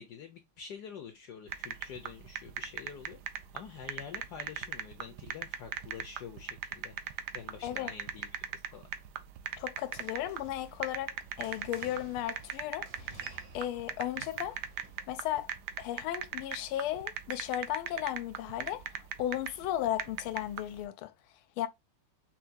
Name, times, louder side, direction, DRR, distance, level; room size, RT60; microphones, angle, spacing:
voice 1, 0.0-3.2 3.5-8.8, left 7 dB, 70° left, 1.0 m, -47 dB
sound 1, 1.5-20.8, right 9 dB, 75° right, 0.9 m, -40 dB
voice 2, 7.6-7.9 9.6-14.6 15.1-15.5 15.8-21.1 21.6-21.7, left 12 dB, 90° left, 1.4 m, -35 dB
sound 2, 9.8-15.0, right 3 dB, 50° right, 0.7 m, -54 dB
5.7 x 2.2 x 2.6 m
omnidirectional pair, 2.3 m